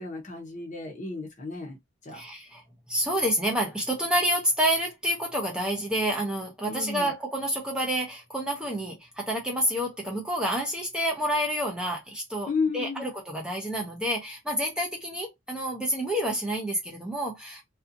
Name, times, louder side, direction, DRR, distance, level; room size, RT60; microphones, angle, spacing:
voice 1, 0.0-1.8 2.0-2.2 6.7-7.1 12.5-13.1, left 4 dB, 35° left, 0.8 m, -32 dB
voice 2, 2.1-2.6 2.9-17.6, equal, 5° right, 0.5 m, -28 dB
2.5 x 2.3 x 2.5 m
head